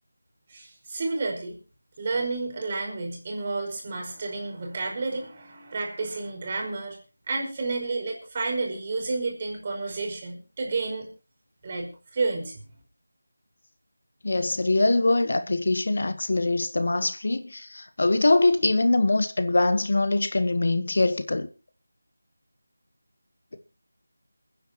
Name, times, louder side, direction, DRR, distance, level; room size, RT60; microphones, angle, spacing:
voice 1, 0.5-1.6 2.0-7.0 7.3-11.1 11.6-12.6, right 3 dB, 30° right, 5.1 m, -31 dB
voice 2, 14.2-21.5, left 2 dB, 60° left, 1.3 m, -23 dB
28.5 x 10.0 x 3.0 m
figure-of-eight pair, 170°, 0 cm